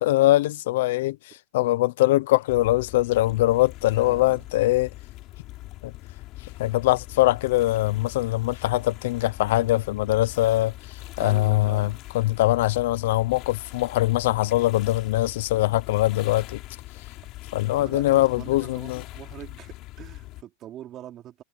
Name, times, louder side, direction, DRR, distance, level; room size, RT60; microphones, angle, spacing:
voice 1, 0.0-4.9 5.8-5.9 6.6-10.7 11.2-16.6 17.5-19.0, left 17 dB, 70° left, 0.7 m, -22 dB
sound 1, 2.5-20.4, left 17 dB, 45° left, 3.3 m, -42 dB
voice 2, 4.0-4.4 11.2-12.0 17.7-21.4, right 12 dB, 30° right, 3.5 m, -43 dB
supercardioid pair, 150°, 0 cm